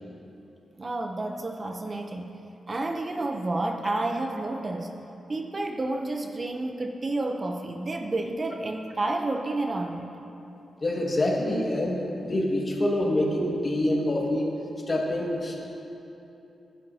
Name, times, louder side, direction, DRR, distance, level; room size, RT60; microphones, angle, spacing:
voice 1, 0.8-2.3 2.7-4.9 5.3-10.1, right 2 dB, 30° right, 4 dB, 0.6 m, -30 dB
voice 2, 10.8-14.5 14.9-15.6, left 1 dB, 35° left, -2 dB, 1.8 m, -26 dB
15.5 x 11.0 x 2.8 m, 2.9 s
cardioid pair, 100°, 0 cm